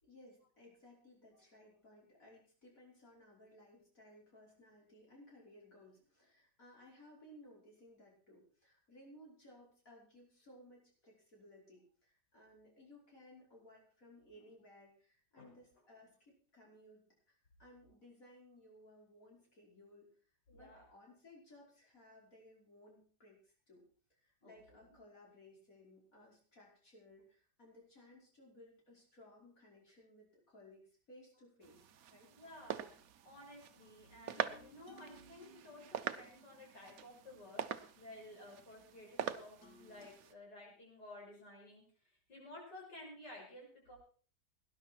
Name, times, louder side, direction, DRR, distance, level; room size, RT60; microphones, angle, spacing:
voice 1, 0.0-17.0 17.3-20.1 20.5-32.3, left 1 dB, 55° left, -3 dB, 5.8 m, -61 dB
voice 2, 20.5-20.9 24.4-24.9 32.3-33.0 33.2-37.6 37.9-41.8 42.3-44.0, left 1 dB, 90° left, -2 dB, 6.7 m, -54 dB
sound 1, 31.6-40.3, right 9 dB, 60° right, 1.2 m, -45 dB
sound 2, 33.8-37.8 39.6-40.1, equal, 70° left, 2.6 m, -63 dB
19.0 x 11.0 x 4.5 m, 0.43 s
omnidirectional pair, 1.8 m